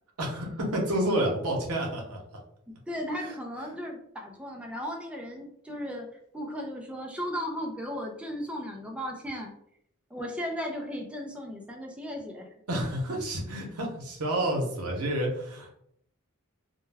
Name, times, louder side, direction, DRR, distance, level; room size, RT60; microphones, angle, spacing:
voice 1, 0.2-2.2 3.2-3.3 12.7-15.7, right 1 dB, 80° right, 0 dB, 0.7 m, -29 dB
voice 2, 2.7-6.1 6.3-9.5 10.1-12.5, equal, 5° right, 1 dB, 0.3 m, -36 dB
2.2 x 2.1 x 3.3 m, 0.71 s
head